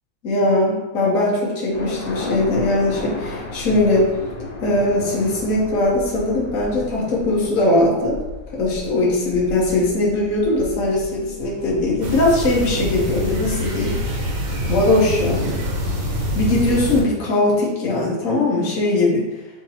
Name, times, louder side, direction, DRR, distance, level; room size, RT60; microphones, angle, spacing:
voice 1, 0.2-4.1 4.6-8.2 8.5-13.9 14.7-15.6 16.3-19.2, left 2 dB, 55° left, -5 dB, 1.4 m, -20 dB
sound 1, 1.7-16.9, left 2 dB, 25° left, 1.5 m, -35 dB
sound 2, 12.0-17.0, equal, 85° right, 1.5 m, -25 dB
6.5 x 2.8 x 2.8 m, 1.1 s
omnidirectional pair, 1.8 m